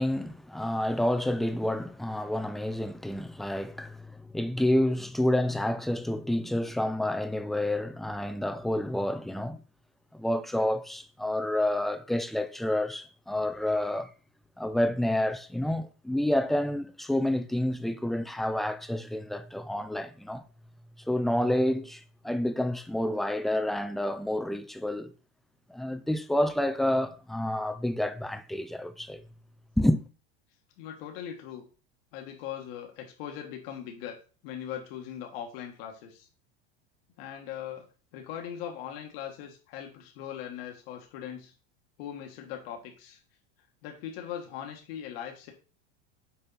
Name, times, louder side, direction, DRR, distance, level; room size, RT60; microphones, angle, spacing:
voice 1, 0.0-9.6 10.1-14.1 14.6-20.4 21.1-25.1 25.7-29.2 29.8-30.0, left 1 dB, ahead, 0.4 m, -29 dB
voice 2, 30.8-31.7 32.1-36.3 37.2-37.9 38.1-41.5 42.0-43.2 43.8-45.5, left 9 dB, 70° left, 1.6 m, -40 dB
6.6 x 4.4 x 4.1 m
supercardioid pair, 120°, 30 cm